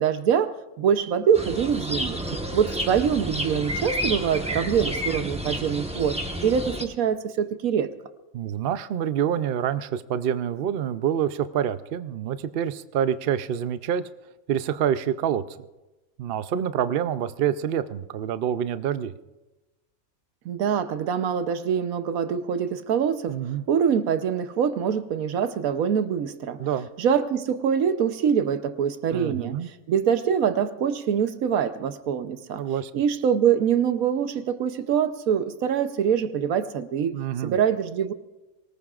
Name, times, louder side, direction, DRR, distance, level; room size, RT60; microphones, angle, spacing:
voice 1, 0.0-2.2 2.5-6.2 6.4-7.9 20.4-23.4 23.7-26.6 27.0-29.6 29.9-32.6 32.9-37.2 37.4-38.1, right 8 dB, 80° right, 11 dB, 1.2 m, -24 dB
sound 1, 1.3-6.8, equal, 5° right, 1.1 m, -30 dB
voice 2, 8.3-14.1 14.5-15.4 16.2-19.1 23.3-23.6 26.6-26.9 29.1-29.7 32.6-32.9 37.1-37.6, right 9 dB, 60° right, 12 dB, 0.6 m, -27 dB
24.0 x 19.0 x 2.4 m, 1.1 s
omnidirectional pair, 1.5 m